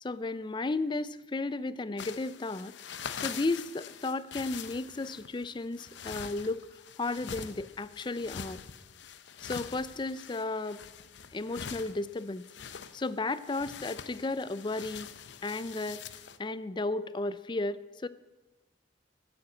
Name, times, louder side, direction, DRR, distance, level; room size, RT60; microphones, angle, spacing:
voice 1, 0.0-2.7 3.2-6.7 7.0-8.6 9.4-10.8 11.3-12.4 12.9-15.1 15.4-16.0 16.4-18.1, left 2 dB, 25° left, 15 dB, 0.4 m, -34 dB
sound 1, 2.0-16.4, left 7 dB, 75° left, 0.7 m, -44 dB
14.0 x 7.9 x 8.3 m, 1.1 s
head